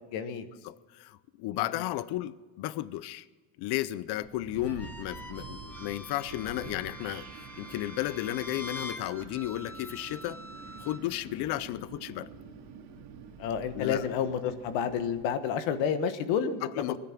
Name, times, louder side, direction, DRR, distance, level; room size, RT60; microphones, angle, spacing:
voice 1, 0.1-0.5 1.5-1.7 13.4-17.0, left 7 dB, 70° left, 10 dB, 1.4 m, -30 dB
voice 2, 0.6-3.2 3.6-10.4 10.8-12.3 13.7-14.0 16.6-17.0, left 15 dB, 55° left, 18 dB, 0.7 m, -34 dB
Wind, 4.2-15.2, right 6 dB, 60° right, 2.3 m, -47 dB
sound 1, 4.7-11.0, left 1 dB, 5° left, 1.1 m, -45 dB
20.0 x 10.5 x 6.0 m, 1.3 s
cardioid pair, 170°, 47 cm